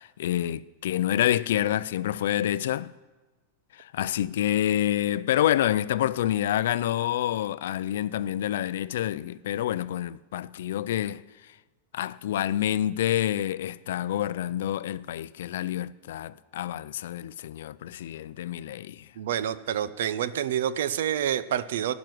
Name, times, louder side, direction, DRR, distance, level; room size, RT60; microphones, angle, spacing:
voice 1, 0.0-2.9 3.8-11.2 11.9-19.1, left 12 dB, 75° left, 0.4 m, -27 dB
voice 2, 19.2-21.9, right 10 dB, 75° right, 0.7 m, -28 dB
16.5 x 6.1 x 9.3 m
supercardioid pair, 165°, 0 cm